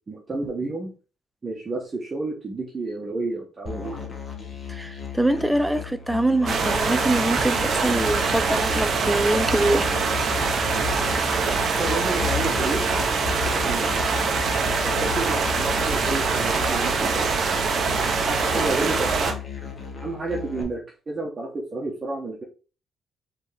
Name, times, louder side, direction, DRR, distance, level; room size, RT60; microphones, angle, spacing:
voice 1, 0.1-0.9 1.4-4.1 11.8-12.8 13.1-14.0 14.7-19.3 20.0-20.8 21.1-22.4, right 2 dB, 35° right, 1.2 m, -31 dB
Musical instrument, 3.7-20.6, left 7 dB, 35° left, 1.4 m, -36 dB
voice 2, 4.7-9.9, right 1 dB, 5° right, 0.4 m, -24 dB
sound 1, 6.5-19.3, right 4 dB, 60° right, 0.8 m, -24 dB
sound 2, 8.5-16.7, left 10 dB, 80° left, 0.5 m, -37 dB
4.2 x 3.5 x 3.5 m
cardioid pair, 90°, 0 cm